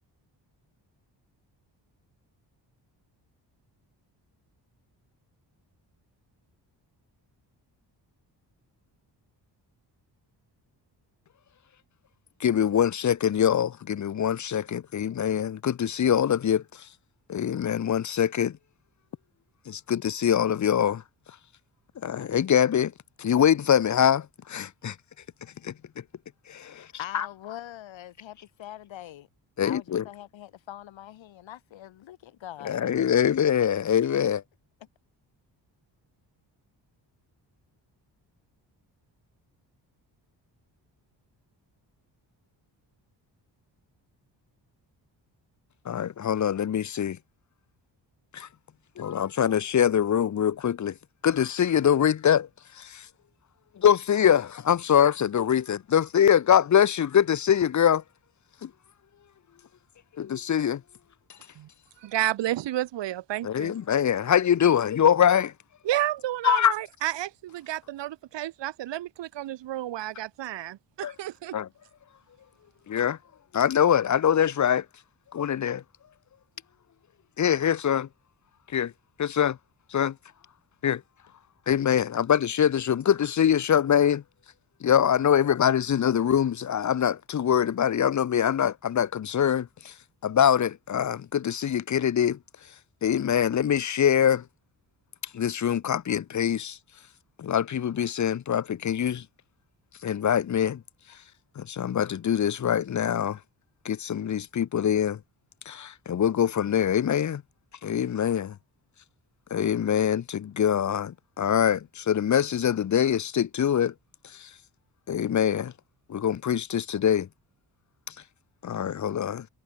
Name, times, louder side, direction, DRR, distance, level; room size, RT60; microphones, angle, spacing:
voice 1, 12.4-16.6 17.3-18.5 19.7-21.0 22.0-22.9 23.2-24.9 25.6-25.7 26.5-26.9 27.1-27.2 29.6-30.0 32.6-34.4 45.9-47.2 48.3-48.5 49.0-50.9 51.2-52.5 52.8-53.0 53.8-58.0 58.6-58.7 60.2-60.8 63.4-65.5 66.4-66.7 71.0-71.1 71.5-71.7 72.9-73.2 73.5-74.8 75.3-75.8 77.4-78.1 78.7-78.9 79.2-79.6 79.9-80.1 80.8-81.0 81.7-84.2 84.8-89.9 90.2-92.4 93.0-94.4 95.3-96.8 97.4-99.2 100.0-100.8 101.6-103.4 103.8-105.2 105.7-107.4 107.8-108.5 109.5-113.9 114.4-114.5 115.1-115.7 116.1-117.3 118.6-119.5, left 9 dB, 40° left, 0.8 m, -24 dB
voice 2, 26.8-29.3 29.6-32.8, left 12 dB, 90° left, 3.8 m, -42 dB
voice 3, 62.0-63.7 65.8-71.6, right 13 dB, 75° right, 1.0 m, -31 dB
cardioid pair, 85°, 44 cm